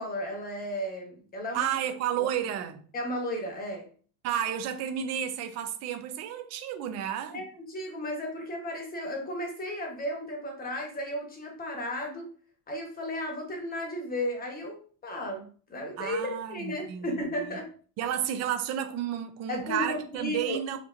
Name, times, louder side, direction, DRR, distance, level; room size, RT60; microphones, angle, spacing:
voice 1, 0.0-1.7 2.2-2.3 2.9-3.9 7.3-12.3 12.7-17.7 19.5-20.6, left 1 dB, 20° left, 1.1 m, -34 dB
voice 2, 1.5-2.8 4.2-7.4 16.0-17.1 18.0-20.8, right 10 dB, 35° right, 0.5 m, -31 dB
5.1 x 3.0 x 2.5 m
cardioid pair, 150°, 45 cm